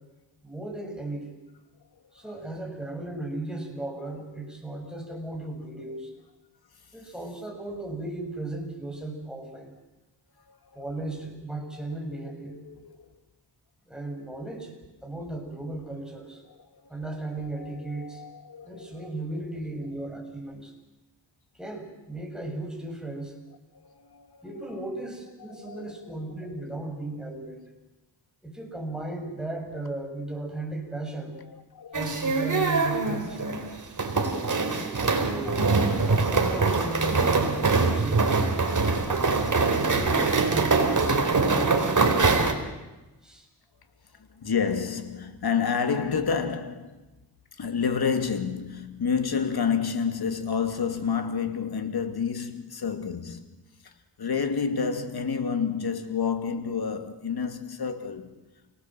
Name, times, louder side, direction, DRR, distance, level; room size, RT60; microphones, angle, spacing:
voice 1, 0.4-1.4 2.1-6.1 6.9-9.8 10.7-12.6 13.9-16.4 16.9-18.2 18.6-20.7 21.5-23.4 24.4-27.6 28.4-31.4 31.9-33.6 34.3-34.4 34.7-35.6 36.1-38.5 39.0-40.8 41.1-42.4 43.2-43.5, right 2 dB, ahead, 7.5 m, -36 dB
voice 2, 10.5-10.8 11.7-11.9 12.1-13.1 16.5-16.6 17.6-19.5 23.8-24.4 24.7-24.8 25.5-26.2 31.3-32.2 38.8-39.3 44.1-47.0 47.5-53.5 53.8-53.9 54.2-58.4, left 6 dB, 65° left, 2.6 m, -30 dB
sound 1, 31.9-42.5, right 4 dB, 45° right, 3.7 m, -23 dB
29.5 x 18.5 x 7.7 m
cardioid pair, 70°, 41 cm